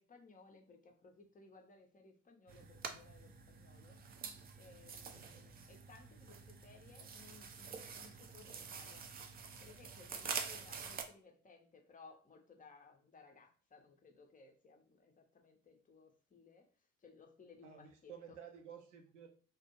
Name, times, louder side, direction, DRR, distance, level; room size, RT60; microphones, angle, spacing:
voice 1, 0.0-4.0 4.6-9.1 9.6-16.7 17.0-18.1, left 4 dB, 25° left, 3 dB, 0.6 m, -61 dB
sound 1, 2.5-11.0, right 6 dB, 25° right, 0.4 m, -47 dB
voice 2, 17.6-19.3, right 8 dB, 80° right, 3 dB, 0.6 m, -53 dB
2.4 x 2.1 x 2.8 m, 0.42 s
figure-of-eight pair, 45°, 36 cm